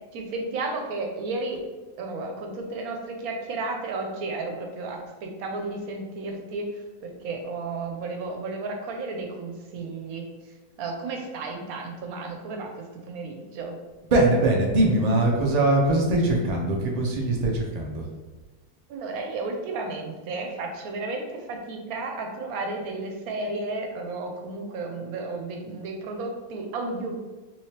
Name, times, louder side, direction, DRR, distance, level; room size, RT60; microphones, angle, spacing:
voice 1, 0.0-1.6 2.0-6.7 7.0-10.3 10.8-13.8 18.9-27.1, right 3 dB, 75° right, 3 dB, 1.1 m, -33 dB
voice 2, 14.1-18.1, right 2 dB, 55° right, -1 dB, 0.4 m, -22 dB
3.4 x 3.2 x 2.8 m, 1.2 s
omnidirectional pair, 1.6 m